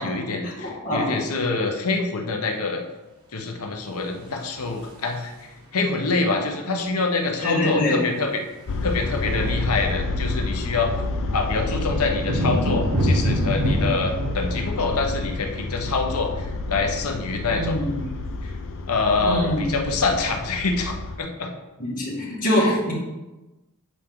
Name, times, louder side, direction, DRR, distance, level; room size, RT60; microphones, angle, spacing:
voice 1, 0.0-2.8 3.3-8.4 8.8-10.9 11.3-17.8 18.4-18.5 18.9-21.5 22.6-22.7, left 3 dB, 80° left, 3 dB, 0.9 m, -26 dB
voice 2, 0.6-1.1 7.4-8.0 17.5-18.0 19.2-19.7 21.8-22.9, left 1 dB, 35° left, -6 dB, 2.1 m, -24 dB
sound 1, 4.0-5.6 6.9-7.0 7.2-7.4 7.7-19.8, equal, 90° right, 1.3 m, -29 dB
sound 2, 8.7-21.2, left 3 dB, 60° left, 0.5 m, -29 dB
7.4 x 4.5 x 3.7 m, 1.1 s
head